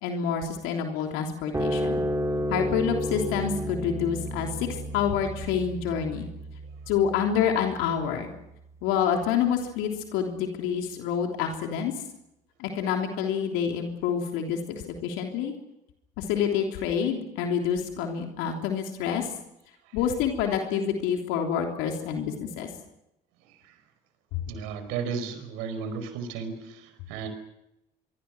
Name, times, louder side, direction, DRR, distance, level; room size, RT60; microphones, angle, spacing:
voice 1, 0.0-2.0 2.5-6.3 6.9-8.3 8.8-11.9 12.6-15.5 16.2-19.3 19.9-22.7 24.3-24.4, left 8 dB, 70° left, 3 dB, 3.4 m, -27 dB
sound 1, 1.5-8.2, equal, 15° right, 4.2 m, -32 dB
voice 2, 24.5-27.3, right 6 dB, 75° right, 9 dB, 4.9 m, -34 dB
25.0 x 24.0 x 6.2 m, 0.85 s
hypercardioid pair, 60°, 21 cm